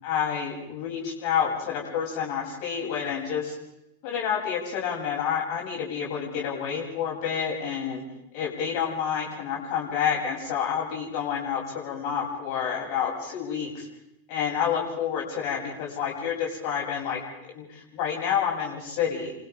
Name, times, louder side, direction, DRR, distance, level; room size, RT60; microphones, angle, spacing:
voice 1, 0.0-3.5 4.0-8.0 8.3-13.9 14.3-17.2 17.5-19.4, left 7 dB, 45° left, -1 dB, 7.8 m, -29 dB
30.0 x 26.5 x 3.8 m, 0.84 s
figure-of-eight pair, 90°, 0 cm